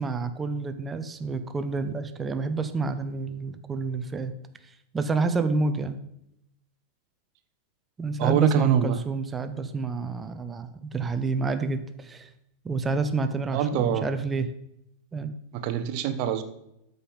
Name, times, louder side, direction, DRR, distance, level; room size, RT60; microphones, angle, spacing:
voice 1, 0.0-4.3 4.9-6.0 8.0-12.3 12.6-14.5 15.1-15.3, right 4 dB, 15° right, 10 dB, 0.9 m, -29 dB
voice 2, 8.2-9.0 13.5-14.0 15.5-16.4, right 9 dB, 45° right, 10 dB, 1.0 m, -24 dB
13.0 x 5.5 x 5.5 m, 0.80 s
figure-of-eight pair, 90°, 0 cm